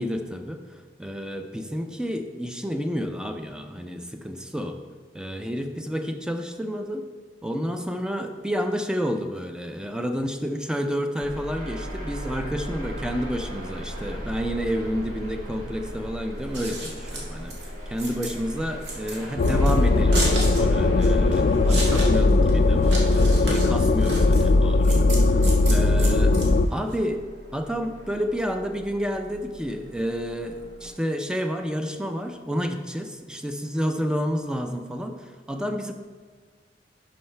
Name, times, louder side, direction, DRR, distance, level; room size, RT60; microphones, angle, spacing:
voice 1, 0.0-4.8 5.1-7.0 7.4-17.6 17.9-25.4 25.7-26.4 26.7-27.2 27.5-35.9, equal, 5° right, 5 dB, 0.5 m, -30 dB
sound 1, 11.2-30.9, equal, 50° right, 1.6 m, -39 dB
Scissors, 16.4-27.0, right 2 dB, 85° right, 1.8 m, -34 dB
sound 2, 19.4-26.7, left 2 dB, 50° left, 0.3 m, -19 dB
11.0 x 5.5 x 3.3 m, 1.5 s
head